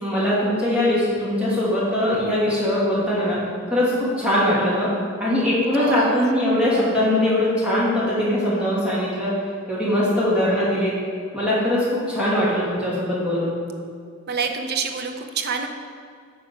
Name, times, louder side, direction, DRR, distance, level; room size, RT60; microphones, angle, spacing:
voice 1, 0.0-3.4 3.7-4.9 5.2-9.3 9.7-10.9 11.3-13.5, left 1 dB, 5° right, -8 dB, 2.1 m, -21 dB
voice 2, 5.7-6.3 14.3-15.7, right 5 dB, 50° right, 5 dB, 0.6 m, -27 dB
8.8 x 3.7 x 5.7 m, 2.2 s
head